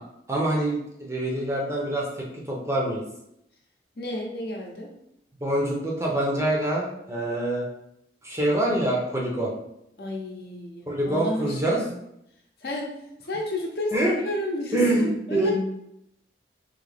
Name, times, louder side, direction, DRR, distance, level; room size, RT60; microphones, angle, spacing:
voice 1, 0.3-3.0 5.4-7.6 8.2-9.5 10.9-11.8 13.9-14.1 14.7-15.5, right 1 dB, 15° right, -2 dB, 0.7 m, -25 dB
voice 2, 4.0-4.9 10.0-12.0 12.6-15.5, left 1 dB, 60° left, -1 dB, 0.8 m, -32 dB
3.8 x 2.8 x 3.4 m, 0.78 s
head